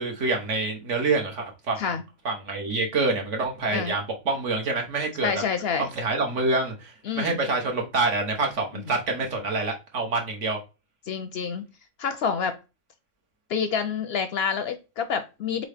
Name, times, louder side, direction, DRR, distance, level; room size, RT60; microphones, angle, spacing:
voice 1, 0.0-1.8 2.2-5.3 5.8-10.6, right 3 dB, 70° right, 1.5 m, -26 dB
voice 2, 5.2-5.9 7.0-7.4 8.9-9.0 11.1-11.6 12.0-12.6 13.5-15.6, left 6 dB, 65° left, 0.7 m, -28 dB
3.9 x 3.8 x 3.4 m
omnidirectional pair, 1.3 m